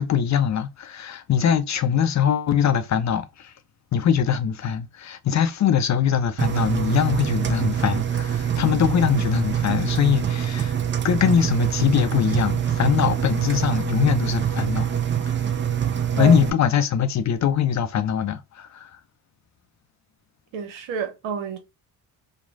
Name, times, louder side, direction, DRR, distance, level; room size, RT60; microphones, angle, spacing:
voice 1, 0.0-3.2 3.9-10.7 11.0-14.9 16.1-18.9, left 8 dB, 40° left, 0.5 m, -22 dB
Engine, 6.4-16.5, right 9 dB, 25° right, 0.5 m, -25 dB
voice 2, 20.5-21.6, right 7 dB, 75° right, 1.0 m, -28 dB
3.0 x 2.2 x 2.6 m
hypercardioid pair, 55°, 47 cm